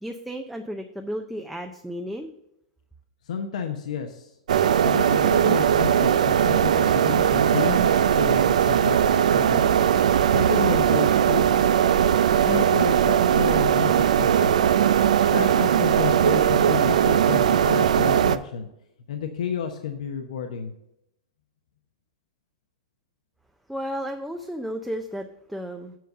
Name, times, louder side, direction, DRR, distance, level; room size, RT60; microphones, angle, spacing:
voice 1, 0.0-2.3 23.7-26.0, equal, ahead, 4 dB, 0.5 m, -33 dB
voice 2, 3.3-4.3 4.8-9.7 10.3-11.7 12.5-14.5 15.3-18.7 19.1-20.7, left 7 dB, 75° left, 5 dB, 0.9 m, -31 dB
sound 1, 4.5-18.4, right 9 dB, 80° right, 0.5 m, -19 dB
7.6 x 5.2 x 6.6 m, 0.82 s
hypercardioid pair, 145°, 4 cm